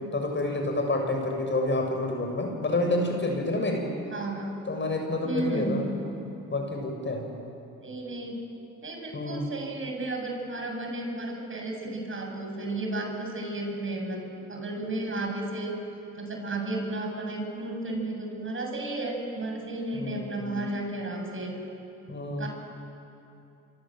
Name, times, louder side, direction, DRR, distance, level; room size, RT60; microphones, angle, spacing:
voice 1, 0.0-3.9 4.7-5.9 6.5-7.3 9.1-9.5 19.9-20.7 22.1-22.5, left 2 dB, 30° left, 2 dB, 6.9 m, -29 dB
voice 2, 4.1-4.6 5.2-6.1 7.8-8.5 8.8-14.2 14.5-15.8 16.2-21.6 22.4-22.5, right 2 dB, 30° right, 2 dB, 7.8 m, -33 dB
25.5 x 25.0 x 7.9 m, 2.7 s
hypercardioid pair, 55°, 39 cm